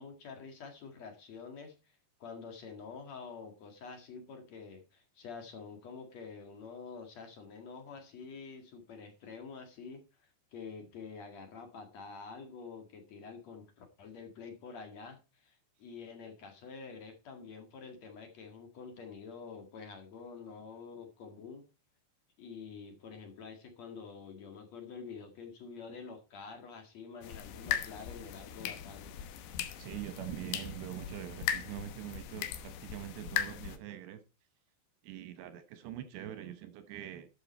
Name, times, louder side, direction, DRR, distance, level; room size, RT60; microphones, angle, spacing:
voice 1, 0.0-21.6 22.4-29.1, left 5 dB, 55° left, 4 dB, 2.1 m, -47 dB
sound 1, 27.2-33.8, left 9 dB, 75° left, 3.2 m, -38 dB
voice 2, 29.8-34.2 35.0-37.3, right 12 dB, 75° right, 10 dB, 2.8 m, -43 dB
12.5 x 7.8 x 4.2 m, 0.30 s
omnidirectional pair, 5.6 m